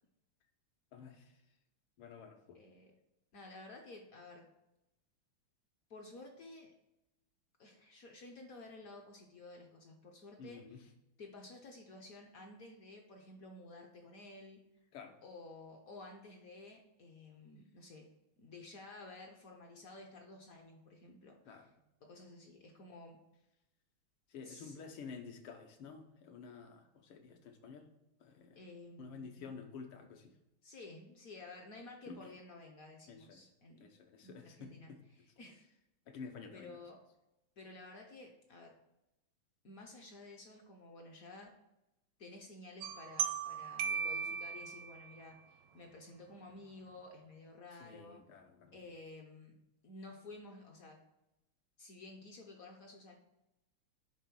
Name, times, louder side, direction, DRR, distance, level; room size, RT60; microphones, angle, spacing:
voice 1, 0.9-1.4 2.0-2.6 10.4-10.8 14.9-15.2 21.5-21.7 24.3-27.9 28.2-28.6 29.0-30.3 32.1-32.3 33.1-33.5 33.8-35.0 36.1-36.8 47.8-48.8, left 5 dB, 75° left, 5 dB, 1.8 m, -51 dB
voice 2, 2.5-2.9 3.3-4.5 5.9-6.7 7.6-10.6 11.2-14.6 15.2-18.1 18.4-21.7 22.0-23.2 24.4-24.7 28.5-29.5 30.6-33.9 34.2-34.9 35.4-35.7 36.5-37.0 37.6-38.7 39.6-41.5 42.2-48.2 48.7-49.6 49.8-51.0 51.8-53.2, left 2 dB, 55° left, 2 dB, 1.0 m, -53 dB
sound 1, 42.8-45.2, right 7 dB, 80° right, 1.6 m, -37 dB
9.4 x 3.7 x 6.1 m, 0.91 s
omnidirectional pair, 2.4 m